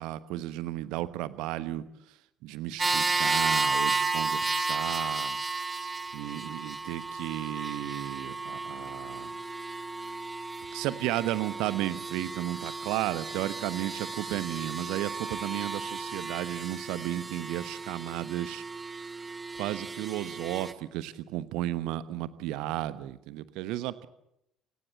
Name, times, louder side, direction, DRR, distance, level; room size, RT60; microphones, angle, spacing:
voice 1, 0.0-1.8 2.4-5.4 6.1-9.3 10.7-18.6 19.6-24.1, right 15 dB, 60° right, 16 dB, 1.1 m, -34 dB
sound 1, 2.8-20.7, right 3 dB, 20° right, 1.6 m, -33 dB
Wind instrument woodwind instrument, 12.5-17.3, right 2 dB, 80° right, 6.3 m, -51 dB
28.0 x 18.0 x 7.6 m, 0.78 s
figure-of-eight pair, 50°, 0 cm